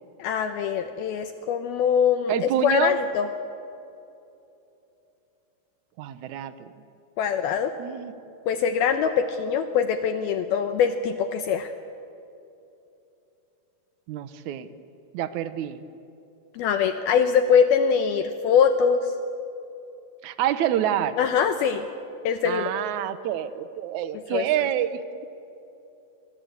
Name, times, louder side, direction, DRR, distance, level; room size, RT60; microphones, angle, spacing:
voice 1, 0.2-3.3 7.2-7.7 8.5-11.7 16.5-19.1 21.2-21.8 22.2-22.7 24.3-24.5, left 7 dB, 75° left, 8 dB, 2.6 m, -23 dB
voice 2, 2.3-3.0 6.0-6.7 7.8-8.1 14.1-14.7 15.1-15.8 20.2-21.2 22.4-25.0, right 11 dB, 80° right, 12 dB, 1.7 m, -27 dB
29.5 x 25.0 x 8.2 m, 2.8 s
omnidirectional pair, 4.9 m